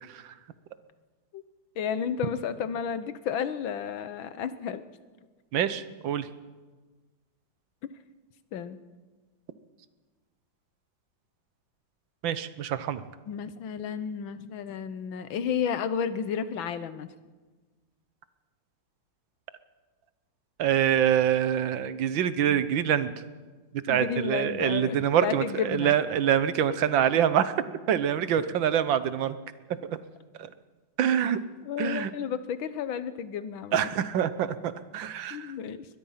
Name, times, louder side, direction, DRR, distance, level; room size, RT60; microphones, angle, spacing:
voice 1, 1.8-4.8 8.5-8.8 13.3-17.2 22.5-22.7 23.9-25.9 26.7-26.8 31.7-33.9 35.3-35.9, left 7 dB, 85° left, 13 dB, 1.8 m, -32 dB
voice 2, 5.5-6.3 12.2-13.0 20.6-23.1 23.9-27.5 27.9-29.4 30.4-30.5 31.0-31.4 31.8-32.1 33.7-35.5, right 9 dB, 80° right, 13 dB, 1.7 m, -25 dB
22.0 x 21.0 x 5.7 m, 1.3 s
omnidirectional pair, 2.1 m